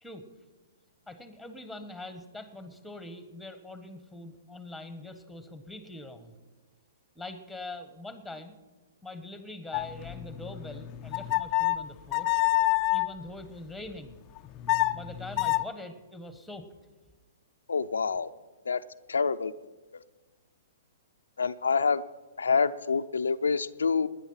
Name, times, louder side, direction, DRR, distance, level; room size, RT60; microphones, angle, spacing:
voice 1, 1.1-6.3 7.1-8.5 9.0-12.4 12.9-14.2 14.9-16.7, left 2 dB, ahead, 9 dB, 1.5 m, -43 dB
sound 1, 9.7-13.1 14.4-15.6, left 18 dB, 35° left, 0.5 m, -28 dB
voice 2, 17.7-18.3 18.7-18.8 19.1-19.5 21.4-22.0 22.4-24.1, left 5 dB, 85° left, 9 dB, 0.5 m, -26 dB
19.0 x 10.5 x 5.8 m, 1.2 s
hypercardioid pair, 125°, 0 cm